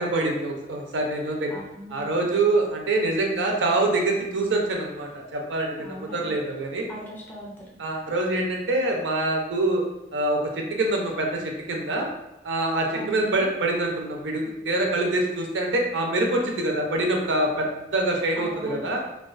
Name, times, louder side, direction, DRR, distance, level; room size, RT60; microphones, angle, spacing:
voice 1, 0.0-1.5 1.9-6.9 7.8-9.8 10.1-12.1 12.4-19.0, right 2 dB, 85° right, 0 dB, 0.5 m, -25 dB
voice 2, 1.5-2.1 5.8-6.3 6.9-7.7 12.9-13.5 18.4-18.9, equal, 10° left, -4 dB, 0.4 m, -39 dB
2.3 x 2.2 x 2.3 m, 0.96 s
head